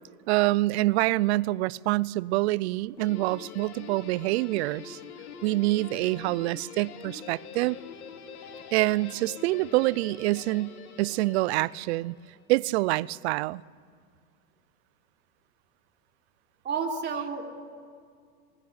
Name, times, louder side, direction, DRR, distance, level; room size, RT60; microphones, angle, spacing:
voice 1, 0.3-5.0 5.4-7.8 8.7-12.1 12.5-13.6, right 19 dB, 50° right, 0.6 m, -26 dB
Guitar, 3.0-12.3, left 6 dB, 80° left, 4.0 m, -45 dB
voice 2, 16.6-17.5, right 5 dB, 25° right, 3.5 m, -30 dB
26.5 x 20.5 x 9.8 m
hypercardioid pair, 130°, 43 cm